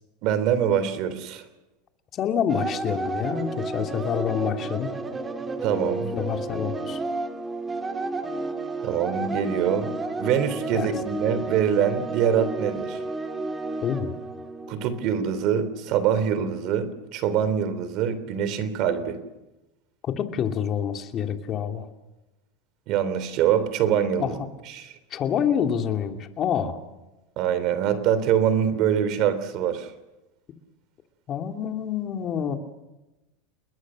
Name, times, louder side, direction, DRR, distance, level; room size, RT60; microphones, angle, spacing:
voice 1, 0.2-1.4 5.6-6.1 8.8-9.9 10.2-13.0 14.7-19.2 22.9-24.4 24.7-24.9 27.4-29.9, right 8 dB, 50° right, 13 dB, 3.4 m, -24 dB
voice 2, 2.1-5.0 6.1-7.0 10.7-10.9 13.8-14.1 20.0-21.9 24.2-24.4 25.1-26.8 31.3-32.6, left 8 dB, 35° left, 5 dB, 2.8 m, -27 dB
sound 1, 2.5-15.2, right 3 dB, 15° right, 2.5 m, -32 dB
29.5 x 21.0 x 6.4 m, 1.0 s
supercardioid pair, 115°, 0 cm